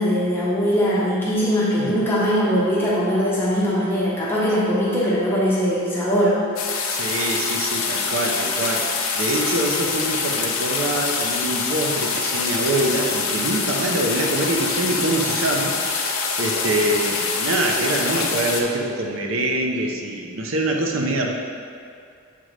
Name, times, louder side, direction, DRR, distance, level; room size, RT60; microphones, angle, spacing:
voice 1, 0.0-6.4, equal, 10° left, -8 dB, 1.0 m, -21 dB
sound 1, 6.6-18.6, left 5 dB, 75° left, 0.7 m, -25 dB
voice 2, 6.9-8.8 9.1-15.8 16.4-21.3, right 1 dB, 70° right, 1 dB, 0.6 m, -24 dB
7.6 x 3.8 x 3.2 m, 2.4 s
head